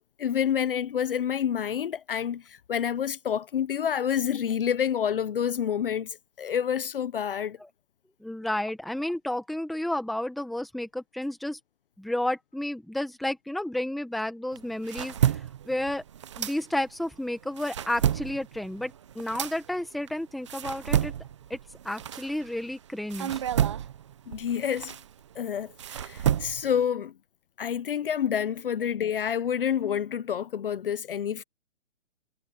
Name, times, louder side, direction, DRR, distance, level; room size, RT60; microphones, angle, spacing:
voice 1, 0.2-7.6 24.3-25.0 25.4-27.1 27.6-31.4, left 8 dB, 50° left, 0.7 m, -28 dB
voice 2, 8.2-11.6 12.0-15.4 15.7-16.0 16.4-21.1 21.5-21.6 21.8-23.4, left 1 dB, ahead, 0.9 m, -31 dB
sound 1, 14.5-17.1 17.4-22.7 23.1-26.8, right 10 dB, 25° right, 0.7 m, -30 dB
hypercardioid pair, 170°, 35 cm